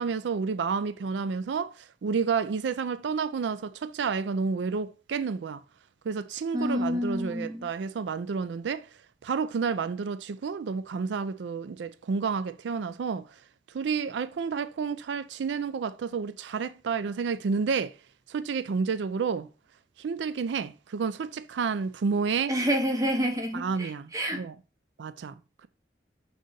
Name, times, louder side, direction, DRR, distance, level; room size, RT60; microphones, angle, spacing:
voice 1, 0.0-5.6 6.1-8.9 9.2-13.3 13.7-18.0 18.3-19.5 20.0-22.5 23.5-24.5 25.0-25.3, right 5 dB, 90° right, 0.4 m, -30 dB
voice 2, 6.5-7.7 22.5-24.4, equal, 20° right, 1.1 m, -28 dB
6.3 x 3.9 x 3.9 m
head